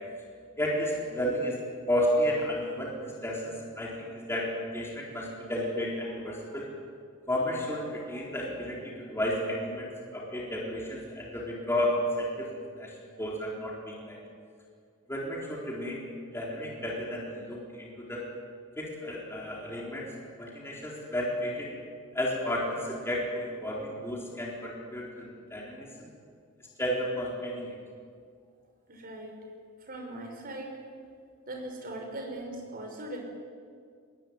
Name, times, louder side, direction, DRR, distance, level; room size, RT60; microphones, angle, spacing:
voice 1, 0.6-1.6 1.9-6.7 7.3-9.9 10.1-12.5 12.8-12.9 13.2-14.2 15.1-16.0 16.3-18.2 18.8-20.1 20.4-21.7 22.1-25.3 25.5-25.9 26.8-27.7, equal, 10° left, -3 dB, 4.1 m, -32 dB
voice 2, 28.9-29.4 29.8-30.8 31.5-33.2, right 1 dB, 40° right, 2 dB, 5.4 m, -40 dB
22.0 x 21.5 x 9.5 m, 2.2 s
head